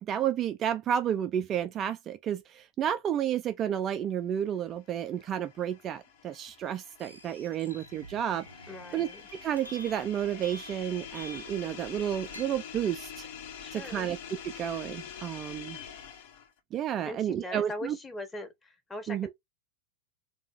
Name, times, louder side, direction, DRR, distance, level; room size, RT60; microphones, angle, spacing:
voice 1, 0.0-8.5 8.9-13.3 13.7-14.2 14.6-15.8 16.7-18.0 19.1-19.3, right 10 dB, 30° right, 0.3 m, -31 dB
sound 1, 4.7-16.6, left 8 dB, 50° left, 0.9 m, -46 dB
sound 2, 7.0-12.4, left 1 dB, 85° left, 0.7 m, -49 dB
voice 2, 8.7-9.2 13.6-14.1 17.0-19.3, left 1 dB, 15° left, 1.0 m, -41 dB
3.4 x 2.7 x 3.4 m
figure-of-eight pair, 90°, 0 cm